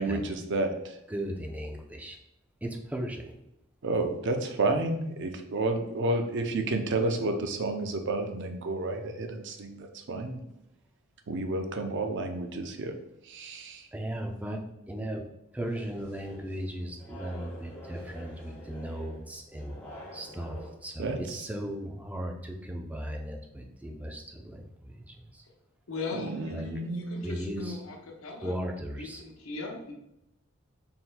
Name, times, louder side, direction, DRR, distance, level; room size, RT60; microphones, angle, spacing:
voice 1, 0.0-1.0 3.8-10.4 11.3-12.9 13.2-13.9 21.0-21.5 26.1-27.8, right 2 dB, 60° right, 5 dB, 0.5 m, -31 dB
voice 2, 1.1-2.2 2.6-3.3 13.9-14.6 14.9-15.2 15.5-19.8 20.1-20.6 20.8-25.1 26.5-26.6 27.2-27.8 28.4-29.2, right 1 dB, 5° right, 2 dB, 0.4 m, -36 dB
sound 1, 15.6-20.7, equal, 10° left, 1.4 m, -47 dB
voice 3, 25.9-28.6 29.0-29.9, left 3 dB, 85° left, 0 dB, 0.8 m, -39 dB
4.3 x 3.7 x 2.2 m, 0.85 s
head